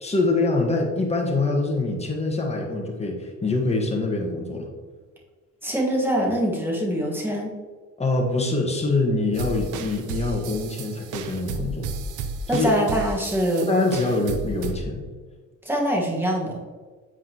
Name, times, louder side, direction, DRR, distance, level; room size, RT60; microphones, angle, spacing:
voice 1, 0.0-4.7 8.0-11.9 12.5-12.7 13.7-15.0, left 2 dB, 20° left, 0 dB, 1.4 m, -24 dB
voice 2, 5.6-7.5 12.5-13.7 15.6-16.6, equal, 5° right, -2 dB, 1.5 m, -24 dB
sound 1, 9.3-14.7, right 4 dB, 85° right, 0.7 m, -33 dB
8.0 x 4.9 x 2.9 m, 1.4 s
cardioid pair, 90°, 30 cm